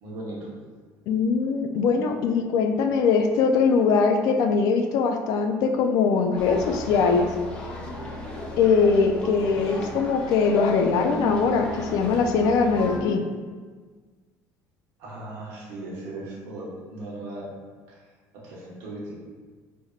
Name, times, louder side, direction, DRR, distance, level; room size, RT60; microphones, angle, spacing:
voice 1, 0.0-0.5 15.0-17.5 17.9-18.0 18.3-19.1, right 2 dB, 85° right, -4 dB, 1.2 m, -37 dB
voice 2, 1.1-7.3 8.6-13.3, left 5 dB, 65° left, 5 dB, 0.4 m, -21 dB
sound 1, 6.4-13.0, left 1 dB, 15° left, 0.6 m, -34 dB
4.2 x 3.4 x 2.4 m, 1.5 s
cardioid pair, 140°, 7 cm